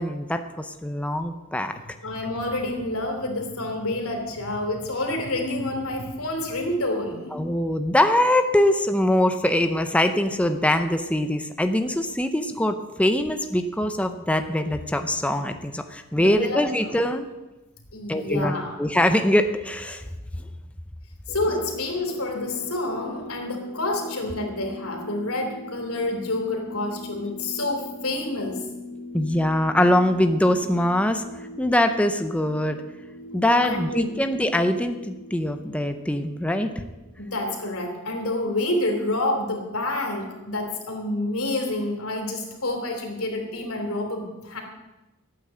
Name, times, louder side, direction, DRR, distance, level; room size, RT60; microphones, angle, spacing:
voice 1, 0.0-1.7 7.3-17.3 18.1-20.0 29.1-31.2 31.6-32.8 33.3-36.8, left 1 dB, 5° left, 7 dB, 0.7 m, -23 dB
voice 2, 2.0-7.3 16.1-17.0 17.9-18.8 21.3-28.6 33.6-34.2 37.2-44.6, left 2 dB, 90° left, 3 dB, 3.3 m, -28 dB
sound 1, 21.3-37.6, left 1 dB, 70° left, 1.4 m, -41 dB
13.5 x 9.0 x 7.7 m, 1.1 s
head